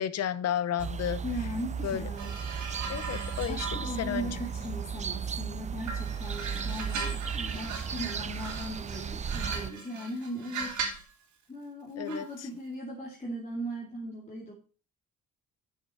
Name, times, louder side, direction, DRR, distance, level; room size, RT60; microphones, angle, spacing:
voice 1, 0.0-1.2 1.8-2.0 2.9-4.4 12.0-12.5, left 10 dB, 55° left, 16 dB, 0.8 m, -32 dB
sound 1, 0.8-9.7, right 7 dB, 25° right, 0.4 m, -35 dB
voice 2, 1.2-2.3 3.5-11.0 11.5-14.5, equal, 20° left, -2 dB, 2.4 m, -38 dB
sound 2, 2.2-5.4 5.8-11.1 12.1-12.3, right 4 dB, 70° right, 3.0 m, -39 dB
6.7 x 6.0 x 6.6 m, 0.38 s
cardioid pair, 90°, 30 cm